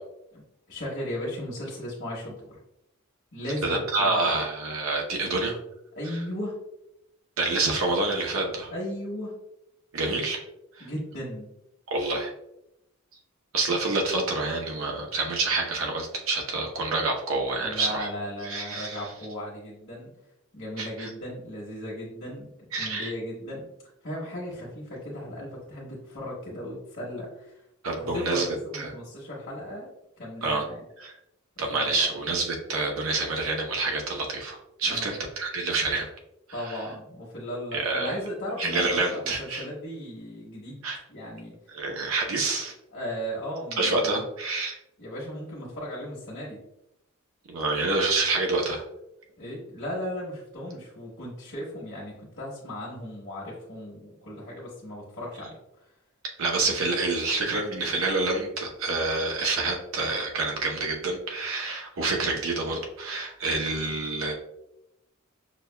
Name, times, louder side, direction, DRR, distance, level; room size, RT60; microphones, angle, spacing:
voice 1, 0.7-2.6 3.3-4.4 5.9-6.6 8.7-9.3 10.8-11.5 17.6-20.1 20.5-22.5 22.8-23.7 24.0-27.6 28.0-29.9 30.2-30.8 31.6-32.1 34.8-35.2 36.5-40.8 41.1-41.5 42.9-44.2 45.0-46.6 49.4-55.6, equal, 55° left, -8 dB, 1.0 m, -36 dB
voice 2, 3.6-5.6 6.1-6.2 7.4-8.7 9.9-10.4 10.8-10.9 11.9-12.3 13.5-18.1 18.4-19.0 20.8-21.1 22.7-23.1 27.8-28.5 28.7-28.9 30.4-30.6 31.0-31.1 31.6-36.0 36.6-36.8 37.7-38.2 38.6-39.6 40.8-41.0 41.7-42.7 43.8-44.8 47.5-48.8 56.4-64.3, right 3 dB, 70° right, 1 dB, 0.8 m, -27 dB
6.0 x 2.3 x 2.2 m, 0.83 s
head